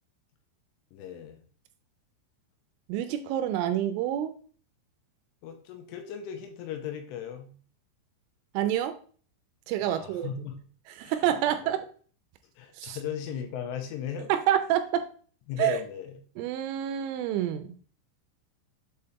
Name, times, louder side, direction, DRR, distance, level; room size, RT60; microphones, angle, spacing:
voice 1, 0.9-1.4 5.4-7.5 9.8-10.6 11.0-11.1 12.6-14.3 15.5-16.2, left 8 dB, 85° left, 5 dB, 3.3 m, -37 dB
voice 2, 2.9-4.4 8.5-9.0 9.7-10.3 11.0-11.9 12.8-13.0 14.3-15.1 15.6-15.8 16.4-17.7, right 11 dB, 85° right, 9 dB, 2.9 m, -27 dB
7.8 x 4.1 x 3.6 m, 0.43 s
omnidirectional pair, 5.8 m